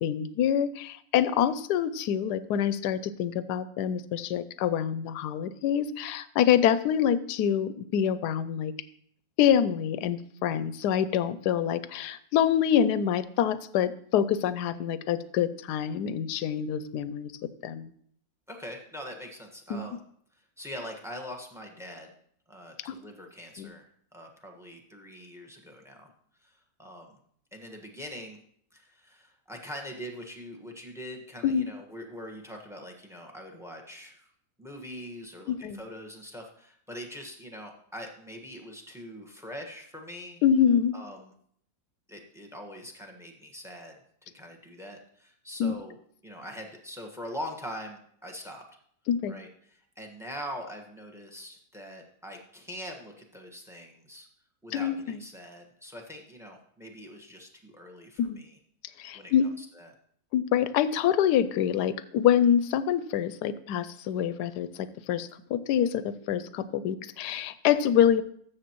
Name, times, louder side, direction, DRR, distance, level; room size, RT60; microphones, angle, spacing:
voice 1, 0.0-8.7 9.4-17.3 17.6-17.9 19.7-19.8 22.9-23.0 23.6-23.7 31.4-31.6 35.5-35.8 40.4-40.9 45.6-45.8 49.1-49.3 54.7-55.2 58.2-58.4 59.0-59.5 60.3-68.2, left 9 dB, 85° left, 15 dB, 1.1 m, -26 dB
voice 2, 18.5-20.0 20.3-22.1 22.5-23.8 24.1-26.1 26.4-27.2 27.5-28.4 28.7-34.3 34.6-40.4 40.9-41.3 42.1-46.0 46.2-48.7 49.3-54.3 54.6-58.6 59.1-59.9, equal, ahead, 3 dB, 1.1 m, -43 dB
13.0 x 7.1 x 3.0 m, 0.64 s
omnidirectional pair, 1.7 m